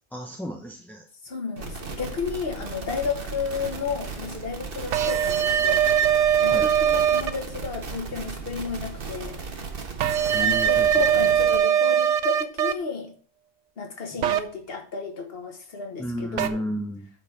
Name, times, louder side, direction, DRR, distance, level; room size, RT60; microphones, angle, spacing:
voice 1, 0.1-1.0 6.5-6.7 10.3-11.3 14.1-14.2 16.0-17.1, equal, ahead, 2 dB, 0.8 m, -33 dB
voice 2, 1.2-5.9 6.4-9.4 10.4-13.1 13.8-16.6, left 5 dB, 50° left, 3 dB, 1.8 m, -32 dB
sound 1, 1.6-11.6, right 4 dB, 50° right, 1.4 m, -36 dB
sound 2, 4.9-7.3 10.0-12.7 14.2-14.4 16.4-16.5, right 9 dB, 70° right, 1.0 m, -21 dB
8.5 x 4.9 x 5.9 m, 0.42 s
omnidirectional pair, 1.3 m